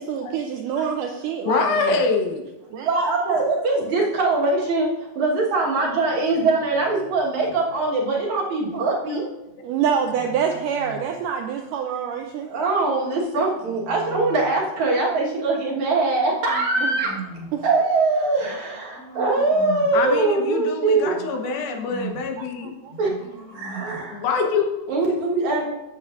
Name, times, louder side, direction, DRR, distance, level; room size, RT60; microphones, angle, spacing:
voice 1, 0.0-2.0 2.7-2.9 9.6-12.5 16.8-16.9 17.5-17.6 22.4-22.9, right 7 dB, 80° right, 4 dB, 1.9 m, -26 dB
voice 2, 1.5-2.4 19.9-22.7 24.1-24.8, left 4 dB, 80° left, 4 dB, 2.8 m, -24 dB
voice 3, 2.8-9.3 12.4-17.2 17.6-21.2 23.0-23.1 23.5-24.2 24.9-25.7, right 3 dB, 60° right, -3 dB, 2.5 m, -22 dB
sound 1, 5.4-7.8 9.5-11.2 12.7-14.7 15.6-17.7 18.4-20.1 21.0-22.4 22.9-24.2, right 3 dB, 40° left, 3.5 m, -41 dB
14.0 x 7.9 x 2.5 m, 0.99 s
omnidirectional pair, 4.3 m